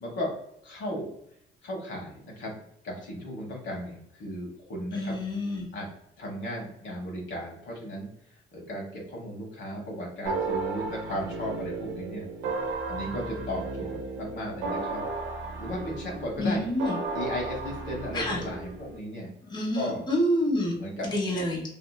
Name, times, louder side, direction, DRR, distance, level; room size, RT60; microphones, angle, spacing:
voice 1, 0.0-0.3 0.6-1.1 1.6-2.6 2.8-5.2 5.7-5.9 6.2-8.1 8.5-12.2 12.9-15.0 15.6-16.6 17.1-19.3 19.7-20.0 20.7-21.1, equal, 70° left, -1 dB, 1.0 m, -35 dB
voice 2, 4.9-5.7 16.4-17.0 18.1-18.4 19.5-20.8 21.0-21.6, left 1 dB, 20° left, -3 dB, 1.1 m, -27 dB
sound 1, 10.3-19.0, right 3 dB, 80° right, 0.5 m, -34 dB
2.8 x 2.5 x 2.2 m, 0.75 s
cardioid pair, 90°, 20 cm